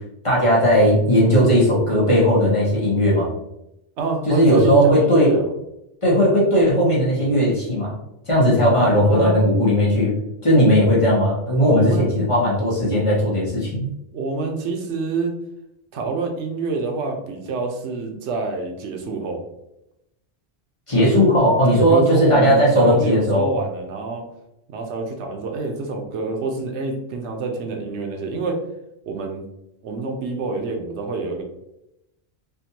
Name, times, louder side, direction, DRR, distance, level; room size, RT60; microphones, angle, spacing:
voice 1, 0.2-3.3 4.3-5.4 6.0-7.9 8.3-10.1 10.4-13.9 20.9-23.5, equal, 30° left, -6 dB, 1.0 m, -17 dB
voice 2, 4.0-5.5 8.6-9.4 11.7-12.3 14.1-15.3 15.9-19.4 20.9-21.3 21.7-24.3 24.7-28.6 29.1-29.4 29.8-31.4, right 4 dB, 85° right, 3 dB, 1.0 m, -27 dB
3.6 x 2.5 x 2.8 m, 0.85 s
omnidirectional pair, 1.1 m